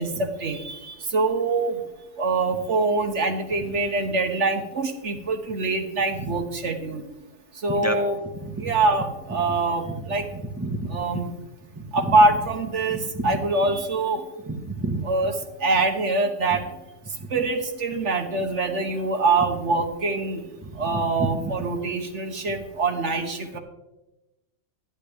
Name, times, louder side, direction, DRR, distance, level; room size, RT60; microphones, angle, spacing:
voice 1, 0.0-1.8 2.2-7.0 7.5-8.2 8.6-10.3 10.9-11.3 11.9-14.2 15.0-16.7 17.3-20.4 20.8-23.6, right 3 dB, 50° right, 5 dB, 1.1 m, -24 dB
voice 2, 10.3-11.0 11.8-11.9 13.1-13.3 14.5-15.0 20.6-20.7 21.2-21.3, right 2 dB, 10° right, 4 dB, 0.8 m, -29 dB
13.5 x 11.0 x 3.4 m, 1.0 s
omnidirectional pair, 1.9 m